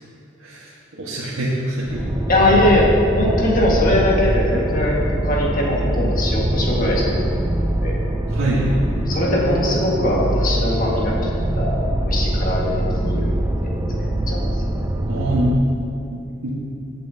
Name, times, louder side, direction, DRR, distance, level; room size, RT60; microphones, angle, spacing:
voice 1, 0.4-2.0 8.3-8.7 15.1-15.6 16.0-16.5, right 1 dB, 85° right, -7 dB, 1.6 m, -24 dB
sound 1, 1.9-15.5, right 1 dB, 15° right, 0.4 m, -23 dB
voice 2, 2.3-2.9 3.2-7.2 7.8-8.0 9.1-14.5, left 1 dB, 40° left, -3 dB, 1.9 m, -21 dB
16.0 x 8.7 x 2.9 m, 2.6 s
head